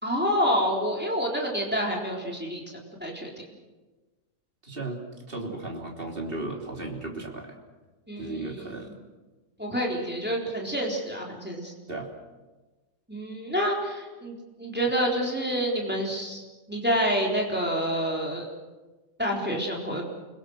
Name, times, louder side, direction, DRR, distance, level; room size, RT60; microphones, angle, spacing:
voice 1, 0.0-3.3 8.1-8.6 9.6-11.7 13.1-16.4 16.7-18.5 19.2-20.0, equal, 5° right, -1 dB, 3.9 m, -28 dB
voice 2, 4.6-5.0 5.3-7.5 8.2-9.0 11.9-12.1, right 2 dB, 35° right, 0 dB, 3.6 m, -35 dB
29.0 x 22.5 x 6.6 m, 1.2 s
omnidirectional pair, 1.6 m